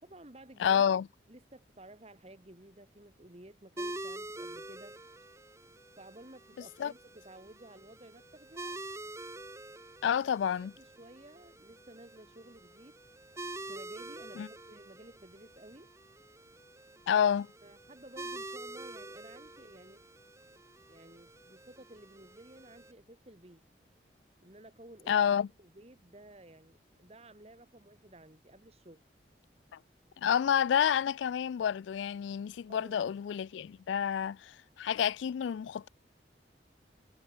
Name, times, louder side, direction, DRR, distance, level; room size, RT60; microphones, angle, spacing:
voice 1, 0.0-0.8 1.3-5.0 6.0-8.8 10.5-13.0 13.6-15.9 17.6-20.1 20.9-23.6 24.4-29.0 32.7-33.1, right 1 dB, 35° right, 2.0 m, -54 dB
voice 2, 0.6-1.1 6.8-6.9 10.0-10.7 14.4-14.5 17.1-17.5 25.1-25.5 30.2-35.9, left 8 dB, 85° left, 0.3 m, -29 dB
sound 1, 3.8-22.9, right 2 dB, 15° right, 3.5 m, -46 dB
head